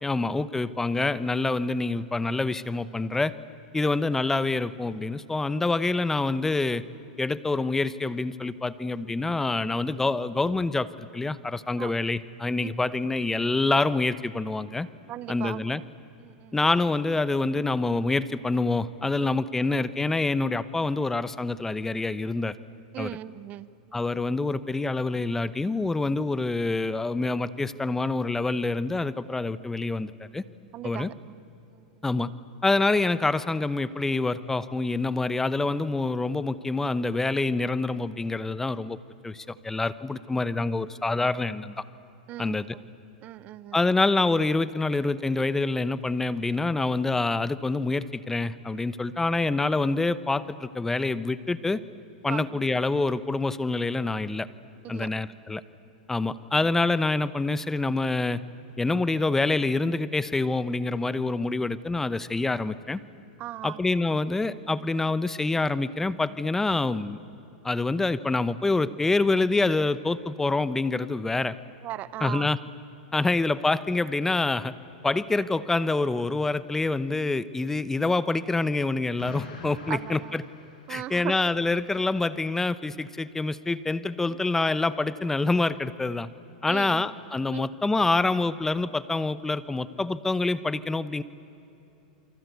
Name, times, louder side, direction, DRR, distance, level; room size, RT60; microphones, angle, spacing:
voice 1, 0.0-3.3 3.7-6.8 7.2-14.9 15.3-15.8 16.5-22.6 23.0-23.1 23.9-30.4 30.8-31.1 32.0-32.3 32.6-39.0 39.2-41.8 42.4-42.8 43.7-51.8 52.2-54.5 54.9-55.6 56.1-58.4 58.8-63.0 63.6-67.2 67.6-71.6 72.2-72.6 73.1-74.7 75.0-80.4 80.9-86.3 86.6-91.2, left 3 dB, 10° left, 16 dB, 0.9 m, -26 dB
voice 2, 15.1-15.8 16.2-16.5 19.2-19.3 22.9-24.0 30.7-31.4 31.7-31.8 42.3-42.8 43.2-43.8 52.3-52.6 54.8-55.1 63.4-63.8 71.8-72.5 79.9-80.3 80.9-81.3 84.3-84.4 86.7-87.1 87.5-87.7, right 13 dB, 35° right, 18 dB, 0.9 m, -38 dB
Explosion, 79.2-81.4, left 4 dB, 90° left, 6.1 m, -44 dB
28.5 x 23.5 x 8.3 m, 2.9 s
hypercardioid pair, 125°, 4 cm